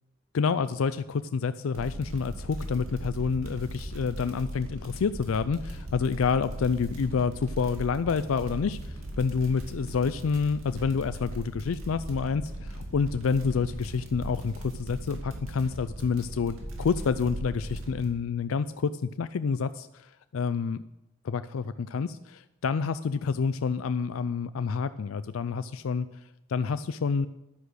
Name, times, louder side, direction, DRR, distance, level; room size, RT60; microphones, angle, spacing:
voice 1, 0.3-8.8 9.2-20.8 21.2-26.1 26.5-27.3, left 5 dB, 90° left, 13 dB, 0.4 m, -28 dB
sound 1, 1.7-18.1, right 1 dB, 85° right, 2.7 m, -38 dB
10.5 x 9.9 x 6.3 m, 0.93 s
head